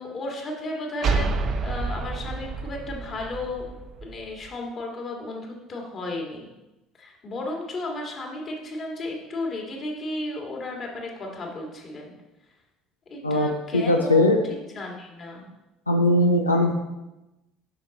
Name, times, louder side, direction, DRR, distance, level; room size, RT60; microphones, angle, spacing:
voice 1, 0.0-3.7 4.0-6.5 6.9-12.1 13.1-15.5, left 2 dB, 40° left, 0 dB, 2.1 m, -34 dB
sound 1, 1.0-4.5, right 4 dB, 45° right, 0.7 m, -29 dB
voice 2, 13.7-14.4 15.9-16.7, left 1 dB, 90° left, 2 dB, 0.4 m, -19 dB
7.3 x 5.9 x 4.2 m, 0.99 s
figure-of-eight pair, 60°, 0 cm